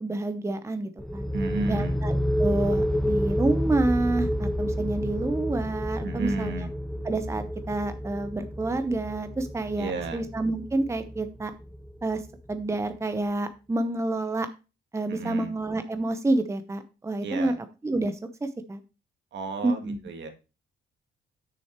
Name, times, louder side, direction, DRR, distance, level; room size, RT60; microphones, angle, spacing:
voice 1, 0.0-1.3 1.7-6.7 7.0-11.5 12.0-12.2 12.5-14.5 14.9-17.5 17.8-18.8 19.6-20.0, right 2 dB, 15° right, 9 dB, 0.8 m, -28 dB
sound 1, 1.0-12.5, equal, ahead, 1.3 m, -30 dB
voice 2, 1.3-2.0 6.0-6.7 9.8-10.2 15.1-15.5 17.2-17.6 19.3-20.3, right 3 dB, 65° right, 5 dB, 1.8 m, -32 dB
6.7 x 6.2 x 4.4 m, 0.30 s
cardioid pair, 90°, 20 cm